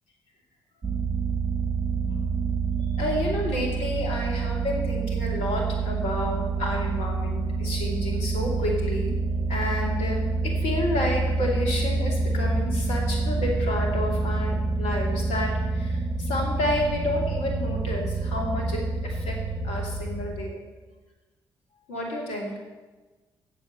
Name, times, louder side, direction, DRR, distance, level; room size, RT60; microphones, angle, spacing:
sound 1, 0.8-20.4, right 3 dB, 40° right, 1.4 m, -27 dB
voice 1, 2.9-9.1 9.5-19.3 19.6-20.6 21.9-22.5, left 1 dB, 65° left, 0 dB, 2.7 m, -30 dB
8.9 x 7.8 x 8.7 m, 1.3 s
figure-of-eight pair, 40°, 12 cm